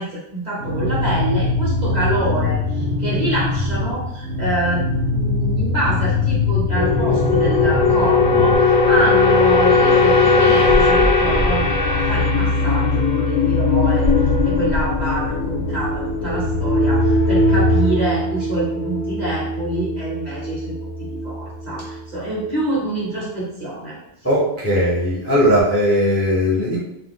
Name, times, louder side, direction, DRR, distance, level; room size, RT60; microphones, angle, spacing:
voice 1, 0.0-14.1 14.4-24.0, right 1 dB, 40° right, -7 dB, 1.1 m, -26 dB
sound 1, 0.6-8.6, left 3 dB, 80° right, 1.0 m, -22 dB
sound 2, 6.7-21.4 21.6-22.0, left 3 dB, 60° left, 0.6 m, -18 dB
voice 2, 24.2-26.8, equal, 15° left, -7 dB, 0.6 m, -18 dB
2.5 x 2.3 x 3.6 m, 0.77 s
omnidirectional pair, 1.2 m